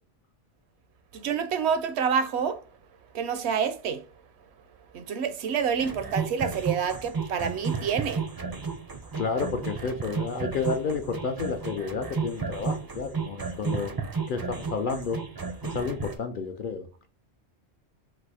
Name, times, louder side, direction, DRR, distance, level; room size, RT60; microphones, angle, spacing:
voice 1, 1.1-2.6 3.1-4.0 4.9-8.3, right 7 dB, 70° right, 0.8 m, -28 dB
sound 1, 5.8-16.1, right 5 dB, 30° right, 0.4 m, -33 dB
voice 2, 9.2-13.9 14.3-15.2 15.7-17.1, left 4 dB, 60° left, 0.6 m, -31 dB
4.1 x 2.4 x 4.7 m
omnidirectional pair, 1.2 m